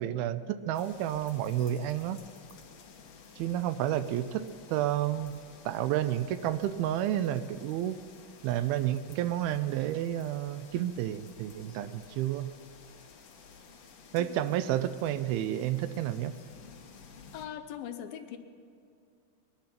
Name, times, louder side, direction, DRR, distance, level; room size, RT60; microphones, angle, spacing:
voice 1, 0.0-2.2 3.4-5.3 5.7-8.0 8.4-12.5 14.1-16.4, right 12 dB, 85° right, 13 dB, 2.3 m, -30 dB
sound 1, 0.7-17.5, left 5 dB, 65° left, 2.7 m, -53 dB
voice 2, 17.3-18.4, left 10 dB, 80° left, 8 dB, 2.3 m, -40 dB
20.5 x 11.5 x 5.8 m, 2.4 s
omnidirectional pair, 4.5 m